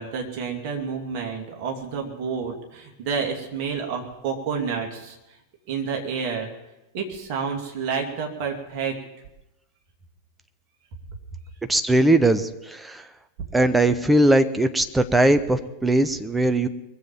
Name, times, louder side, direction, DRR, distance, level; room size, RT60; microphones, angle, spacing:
voice 1, 0.0-5.2 5.7-6.5 6.9-9.0, right 6 dB, 45° right, 1 dB, 2.6 m, -29 dB
voice 2, 11.7-13.0 13.5-16.7, right 1 dB, 5° right, 10 dB, 0.8 m, -20 dB
22.5 x 7.7 x 7.0 m, 0.95 s
figure-of-eight pair, 90°, 0 cm